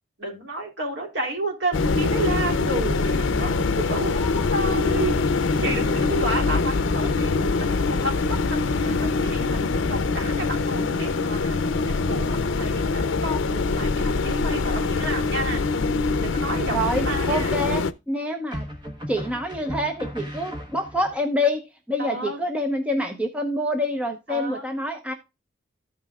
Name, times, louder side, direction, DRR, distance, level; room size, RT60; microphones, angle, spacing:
voice 1, 0.2-5.3 5.6-7.4 7.7-9.6 9.9-15.6 16.2-17.6 22.0-22.4 24.3-24.6, right 1 dB, 65° right, 0 dB, 3.3 m, -31 dB
sound 1, 1.7-17.9, left 3 dB, 75° left, 0.6 m, -24 dB
voice 2, 16.7-18.6 19.1-25.1, left 1 dB, 5° right, 4 dB, 0.9 m, -26 dB
sound 2, 18.5-21.2, equal, 25° right, 1.3 m, -36 dB
14.5 x 5.6 x 2.3 m, 0.25 s
head